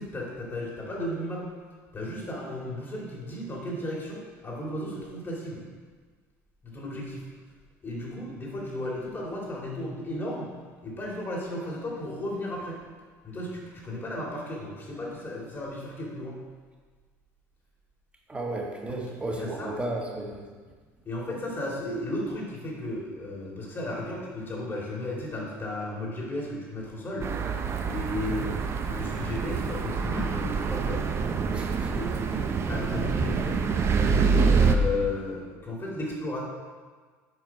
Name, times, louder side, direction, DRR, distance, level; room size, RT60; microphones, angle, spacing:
voice 1, 0.0-1.5 1.9-5.7 6.6-7.2 7.8-10.5 10.8-12.8 13.2-16.4 18.9-19.7 21.0-27.3 27.8-28.5 28.8-31.0 31.9-32.1 32.7-33.7 34.2-36.4, left 1 dB, 30° left, -3 dB, 2.3 m, -34 dB
voice 2, 18.3-20.4 28.3-28.5 31.5-31.9 32.3-32.4, right 2 dB, 15° right, -1 dB, 1.5 m, -34 dB
sound 1, 27.2-34.8, right 5 dB, 35° right, 0.6 m, -26 dB
7.7 x 4.9 x 4.5 m, 1.5 s
supercardioid pair, 95°, 7 cm